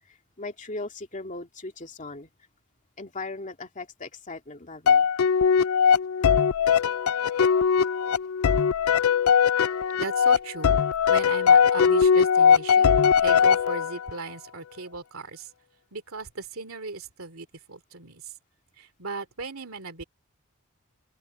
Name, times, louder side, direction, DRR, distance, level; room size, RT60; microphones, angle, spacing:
voice 1, 0.1-2.3 3.0-5.1, left 3 dB, 35° left, 2.4 m, -38 dB
sound 1, 4.9-14.1, left 7 dB, 70° left, 0.5 m, -20 dB
voice 2, 10.0-10.8 11.1-13.0 13.2-15.5 15.9-18.3 18.8-20.0, right 3 dB, 65° right, 3.0 m, -37 dB
open air
head